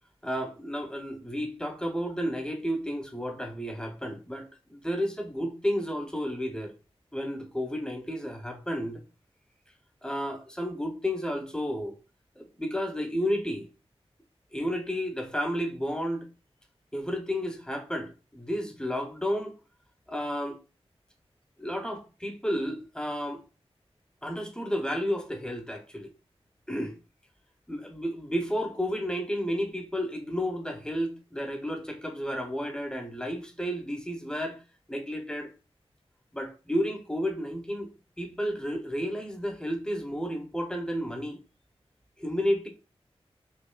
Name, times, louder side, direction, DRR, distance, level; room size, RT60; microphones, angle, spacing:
voice 1, 0.2-6.7 7.1-9.0 10.0-11.9 12.4-13.7 14.5-16.3 16.9-19.6 20.1-20.6 21.6-23.4 24.2-26.1 26.7-27.0 27.7-34.6 34.9-35.5 36.3-37.9 38.2-41.4 42.2-42.7, equal, 5° left, 0.7 m, -32 dB
4.3 x 2.6 x 2.3 m
wide cardioid pair, 95°, 11 cm